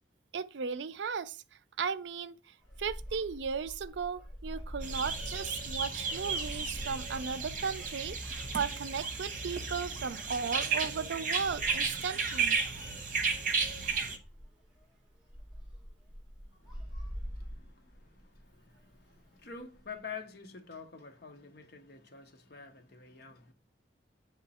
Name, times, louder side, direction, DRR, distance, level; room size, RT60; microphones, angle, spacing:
voice 1, 0.3-1.4 1.8-12.6, right 6 dB, 75° right, 0.4 m, -36 dB
sound 1, 2.6-19.9, equal, 5° right, 1.8 m, -47 dB
sound 2, 4.8-14.2, right 5 dB, 45° right, 1.0 m, -34 dB
voice 2, 16.6-23.5, left 5 dB, 55° left, 1.0 m, -48 dB
8.6 x 3.7 x 4.2 m
head